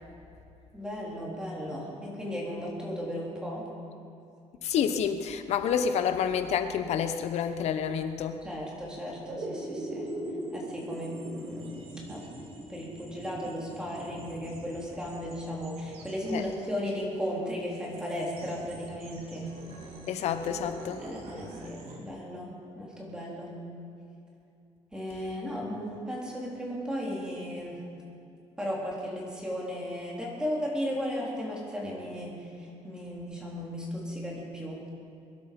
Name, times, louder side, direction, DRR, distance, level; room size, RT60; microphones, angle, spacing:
voice 1, 0.7-3.6 8.4-10.1 10.5-12.2 12.7-19.5 21.0-23.5 24.9-27.8 28.6-34.8, equal, 5° right, -4 dB, 3.8 m, -35 dB
voice 2, 4.6-8.4 16.3-16.4 20.1-21.1, left 7 dB, 70° left, 9 dB, 1.1 m, -29 dB
sound 1, 9.0-22.0, right 1 dB, 60° right, 3.2 m, -42 dB
22.5 x 12.0 x 5.4 m, 2.6 s
cardioid pair, 150°, 12 cm